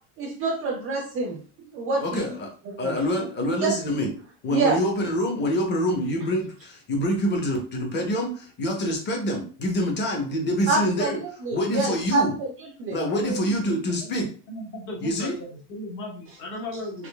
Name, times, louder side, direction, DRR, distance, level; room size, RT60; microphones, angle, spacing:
voice 1, 0.2-1.4 1.7-2.3 2.7-3.0 3.6-3.8 4.5-4.8 10.7-12.5 12.8-13.0, right 3 dB, 30° right, 0.4 m, -26 dB
voice 2, 2.0-2.5 2.8-4.1 4.4-11.2 11.5-12.4 12.9-14.3 15.0-15.3, equal, 25° left, 0.7 m, -26 dB
voice 3, 13.1-17.1, left 1 dB, 45° left, 1.0 m, -36 dB
3.7 x 3.0 x 2.2 m
cardioid pair, 160°, 45 cm